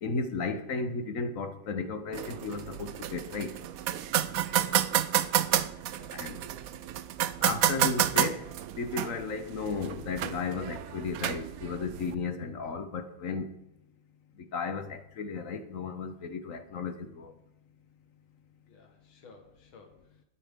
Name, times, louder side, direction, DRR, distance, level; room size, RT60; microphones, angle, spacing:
voice 1, 0.0-3.5 6.1-6.4 7.4-8.4 8.8-13.5 14.5-17.3, left 4 dB, 50° left, 8 dB, 1.2 m, -34 dB
sound 1, 2.1-12.1, right 11 dB, 85° right, 0.7 m, -30 dB
voice 2, 4.5-5.4 5.9-6.2 18.7-20.2, left 4 dB, 85° left, 3 dB, 2.3 m, -55 dB
20.0 x 8.7 x 3.7 m, 0.83 s
omnidirectional pair, 2.2 m